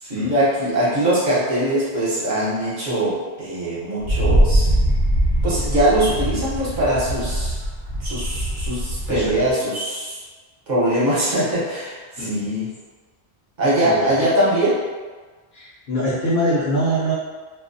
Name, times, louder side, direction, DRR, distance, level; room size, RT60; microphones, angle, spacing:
voice 1, 0.0-4.7 5.4-7.5 8.0-10.2 10.7-12.7 13.6-14.8, right 1 dB, 45° right, -8 dB, 0.9 m, -22 dB
Wind, 4.0-9.5, right 1 dB, 75° right, 0.8 m, -22 dB
voice 2, 9.1-9.4 12.2-12.4 13.8-14.1 15.5-17.1, equal, 55° left, -10 dB, 0.8 m, -23 dB
2.3 x 2.2 x 2.5 m, 1.4 s
omnidirectional pair, 1.1 m